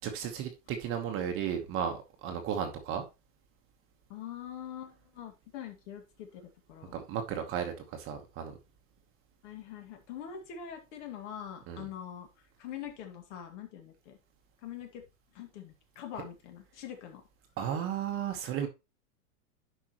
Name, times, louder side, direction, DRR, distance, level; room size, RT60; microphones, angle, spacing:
voice 1, 0.0-3.0 6.9-8.6 11.7-11.9 17.6-18.7, right 8 dB, 30° right, 1.2 m, -34 dB
voice 2, 4.1-7.0 9.4-14.2 14.6-15.0 15.3-17.2, left 9 dB, 50° left, 2.3 m, -44 dB
10.5 x 5.6 x 3.0 m
supercardioid pair, 155°, 46 cm